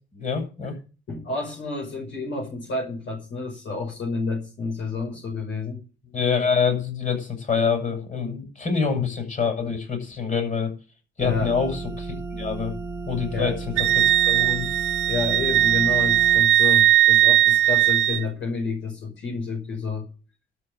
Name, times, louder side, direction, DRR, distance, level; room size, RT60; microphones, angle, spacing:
voice 1, 0.1-0.7 6.1-10.7 11.2-12.7 13.1-13.5 14.0-14.7, left 6 dB, 40° left, 4 dB, 7.2 m, -26 dB
voice 2, 1.1-5.8 8.9-9.0 11.2-11.5 13.3-13.6 15.1-20.1, left 4 dB, 70° left, 0 dB, 5.6 m, -30 dB
sound 1, 11.2-16.4, right 3 dB, 15° right, 1.6 m, -34 dB
Wind instrument woodwind instrument, 13.8-18.2, right 13 dB, 80° right, 0.8 m, -19 dB
12.5 x 5.6 x 9.2 m, 0.34 s
cardioid pair, 90°, 20 cm